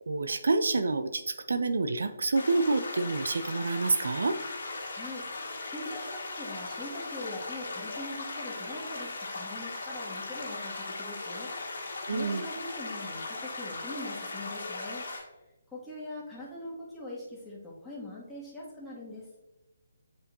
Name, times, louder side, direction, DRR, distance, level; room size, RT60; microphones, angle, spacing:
voice 1, 0.1-4.4 12.1-12.4, right 3 dB, 65° right, 10 dB, 0.4 m, -28 dB
sound 1, 2.3-15.2, left 3 dB, 60° left, 1.8 m, -38 dB
voice 2, 4.8-11.8 12.1-15.1 15.7-19.3, left 1 dB, 5° left, -7 dB, 1.9 m, -42 dB
8.9 x 4.4 x 2.6 m, 1.0 s
figure-of-eight pair, 140°, 0 cm